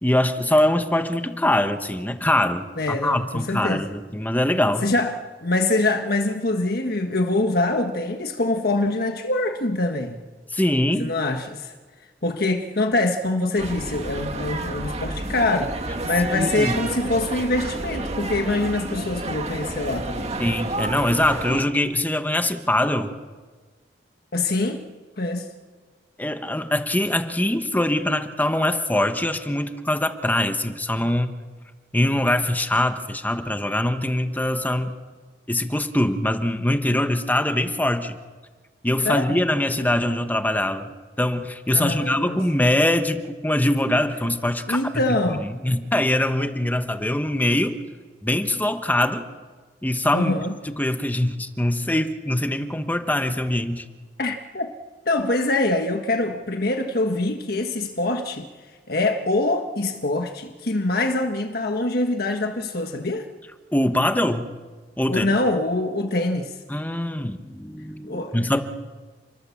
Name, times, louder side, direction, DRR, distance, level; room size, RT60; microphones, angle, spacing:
voice 1, 0.0-4.9 10.5-11.1 16.3-16.8 20.4-23.1 26.2-31.3 31.9-34.9 35.5-38.2 38.8-40.9 41.2-44.8 45.3-47.8 48.2-49.2 49.8-50.3 50.6-53.8 63.7-64.5 65.0-65.3 66.7-68.6, left 1 dB, 10° left, 8 dB, 1.2 m, -23 dB
voice 2, 2.8-3.8 4.8-10.2 11.0-11.7 12.2-20.3 24.3-24.8 25.2-25.5 39.0-39.3 41.7-42.4 44.7-45.5 50.1-50.5 54.2-54.7 55.1-58.5 58.9-63.3 65.1-66.5 68.0-68.4, left 2 dB, 60° left, 4 dB, 1.5 m, -24 dB
sound 1, 13.6-21.6, right 2 dB, 40° right, 2.0 m, -30 dB
29.5 x 21.5 x 7.2 m, 1.4 s
head